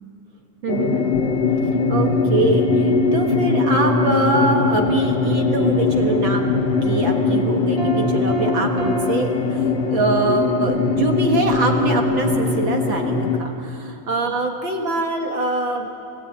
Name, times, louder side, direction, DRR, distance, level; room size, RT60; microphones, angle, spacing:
voice 1, 0.6-1.1 1.9-6.5 6.8-15.9, right 2 dB, 45° right, 2 dB, 1.9 m, -24 dB
sound 1, 0.7-13.4, left 3 dB, 60° left, 2.3 m, -20 dB
Piano, 7.8-10.3, right 5 dB, 25° right, 2.8 m, -31 dB
29.0 x 16.0 x 8.9 m, 2.8 s
omnidirectional pair, 3.6 m